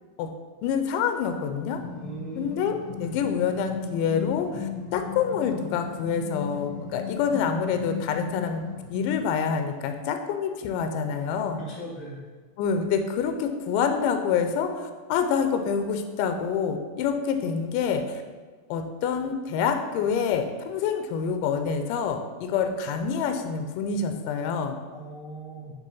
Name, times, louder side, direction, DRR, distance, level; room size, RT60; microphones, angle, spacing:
voice 1, 0.6-1.8 2.4-8.7 8.9-11.6 12.6-18.2 18.7-24.8, left 6 dB, 85° left, 6 dB, 1.9 m, -27 dB
sound 1, 1.8-9.1, left 7 dB, 25° right, 1.2 m, -36 dB
voice 2, 1.9-2.6 3.0-3.1 11.6-12.2 24.9-25.7, right 2 dB, 40° left, -6 dB, 0.4 m, -39 dB
8.4 x 3.4 x 5.4 m, 1.4 s
omnidirectional pair, 4.4 m